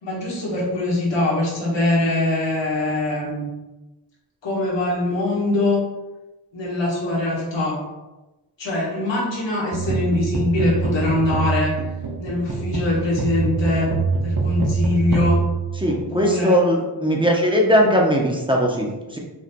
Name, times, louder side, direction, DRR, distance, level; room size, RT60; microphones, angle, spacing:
voice 1, 0.0-3.5 4.4-5.8 6.5-7.8 8.6-11.7 12.2-13.9 14.2-15.4 15.8-16.6, left 2 dB, 80° left, -5 dB, 1.3 m, -23 dB
sound 1, 9.7-16.4, right 4 dB, 50° right, 0.8 m, -24 dB
voice 2, 15.8-19.2, equal, 10° right, -1 dB, 0.7 m, -19 dB
5.1 x 2.6 x 2.2 m, 1.1 s
cardioid pair, 40°, 43 cm